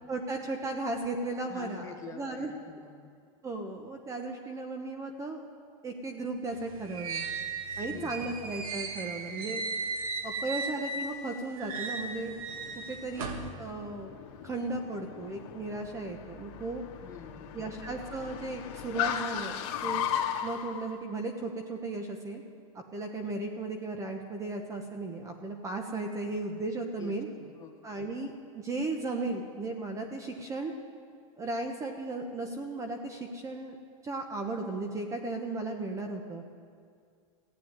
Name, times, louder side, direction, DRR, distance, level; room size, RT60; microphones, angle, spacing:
voice 1, 0.1-2.5 3.4-5.5 5.8-7.3 7.8-9.7 10.2-12.3 12.9-14.1 14.4-16.8 17.5-20.1 20.4-22.4 22.9-27.3 27.8-30.7 31.4-33.8 34.0-36.4, right 2 dB, 15° right, 4 dB, 1.2 m, -35 dB
voice 2, 1.5-3.1 7.9-8.4 17.0-17.8 27.0-27.7, left 7 dB, 20° left, 2 dB, 1.6 m, -47 dB
sound 1, 6.5-11.2 11.6-13.5, right 4 dB, 90° right, 1.8 m, -36 dB
Car, 11.9-20.9, left 9 dB, 55° left, 1.9 m, -37 dB
15.5 x 9.3 x 9.8 m, 2.2 s
supercardioid pair, 140°, 18 cm